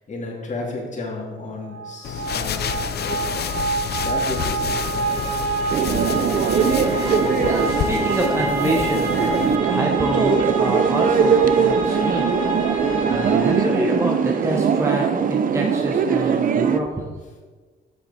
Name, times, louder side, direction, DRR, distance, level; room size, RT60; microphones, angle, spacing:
voice 1, 0.1-5.3, left 2 dB, 35° left, -2 dB, 2.3 m, -33 dB
sound 1, 1.6-14.4, right 3 dB, 90° right, 1.7 m, -27 dB
sound 2, 2.0-9.6, left 9 dB, 55° left, 0.5 m, -29 dB
sound 3, 5.7-16.8, right 7 dB, 45° right, 0.5 m, -21 dB
voice 2, 6.8-12.3 12.8-17.1, right 1 dB, 15° right, 0 dB, 0.9 m, -27 dB
7.4 x 6.4 x 4.2 m, 1.4 s
cardioid pair, 90°, 20 cm